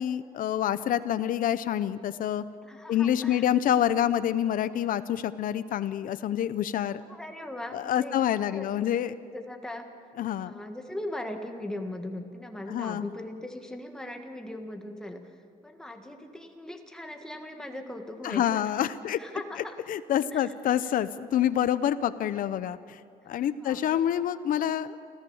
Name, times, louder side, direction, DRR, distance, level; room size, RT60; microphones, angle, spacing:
voice 1, 0.0-2.4 2.9-7.0 7.7-9.1 10.2-10.6 12.7-13.1 18.2-19.2 19.9-23.0 23.3-25.0, left 10 dB, 60° left, 13 dB, 0.7 m, -27 dB
voice 2, 2.6-3.5 7.1-8.2 8.5-8.7 9.3-9.9 10.5-15.3 15.6-18.6 19.1-19.8 20.3-20.5 23.6-23.8, left 1 dB, 5° left, 4 dB, 1.5 m, -39 dB
27.5 x 15.0 x 7.1 m, 2.3 s
cardioid pair, 155°, 16 cm